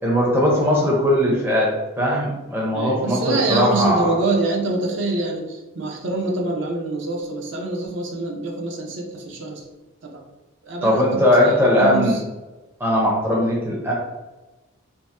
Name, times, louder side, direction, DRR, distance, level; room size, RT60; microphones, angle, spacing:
voice 1, 0.0-4.1 10.8-12.2 12.8-13.9, equal, 10° right, -4 dB, 0.5 m, -19 dB
voice 2, 2.7-9.6 10.0-10.2 10.6-12.2, right 2 dB, 60° right, 0 dB, 0.6 m, -25 dB
2.8 x 2.0 x 3.3 m, 1.1 s
head